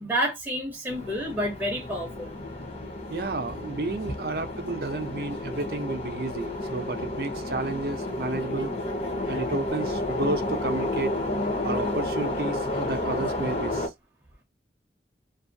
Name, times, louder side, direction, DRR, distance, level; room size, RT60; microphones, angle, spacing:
voice 1, 0.0-2.4, equal, 10° right, 0.7 m, -29 dB
sound 1, 0.9-13.9, left 1 dB, 35° left, 0.9 m, -31 dB
voice 2, 3.1-8.7 9.3-11.1 11.6-13.9, right 2 dB, 60° right, 0.5 m, -31 dB
2.6 x 2.4 x 2.5 m
head